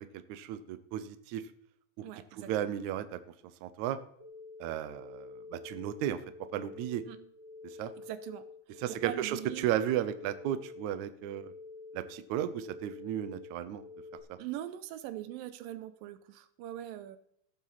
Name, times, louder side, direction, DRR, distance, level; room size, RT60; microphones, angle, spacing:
voice 1, 0.0-1.4 2.0-2.1 2.3-3.2 3.6-4.0 4.6-6.2 6.5-7.0 7.6-7.9 8.8-11.5 11.9-13.9 14.3-14.4, right 11 dB, 70° right, 11 dB, 1.9 m, -34 dB
voice 2, 2.0-2.7 7.1-7.2 8.0-9.7 14.4-17.2, right 13 dB, 90° right, 11 dB, 2.4 m, -42 dB
sound 1, 4.2-14.2, left 4 dB, 30° right, 1.2 m, -49 dB
18.5 x 7.3 x 4.1 m, 0.70 s
omnidirectional pair, 4.0 m